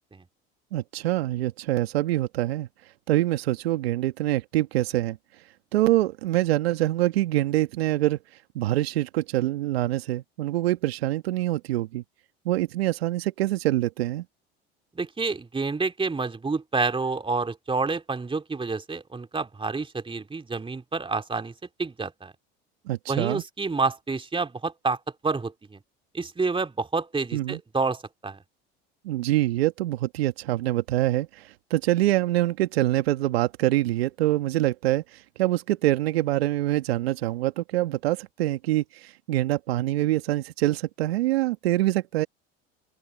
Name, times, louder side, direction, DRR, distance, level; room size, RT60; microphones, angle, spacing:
voice 1, 0.7-2.7 3.1-5.2 5.7-8.2 8.6-12.0 12.5-14.2 22.9-23.4 27.3-27.6 29.0-42.3, right 16 dB, 80° right, 1.9 m, -25 dB
voice 2, 14.9-21.5 21.8-22.3 23.1-25.8 26.1-28.4, right 4 dB, 15° right, 3.0 m, -28 dB
open air
hypercardioid pair, 75°, 30 cm